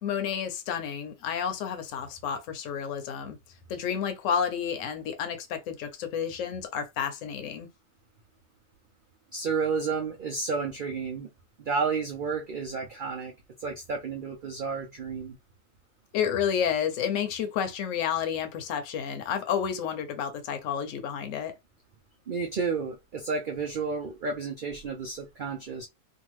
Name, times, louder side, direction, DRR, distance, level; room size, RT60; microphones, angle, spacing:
voice 1, 0.0-3.4 3.7-7.7 16.1-21.5, left 8 dB, 65° left, 1.0 m, -30 dB
voice 2, 9.3-11.3 11.6-13.3 13.6-15.4 22.3-25.9, right 5 dB, 90° right, 0.4 m, -31 dB
2.7 x 2.4 x 3.0 m
omnidirectional pair, 1.6 m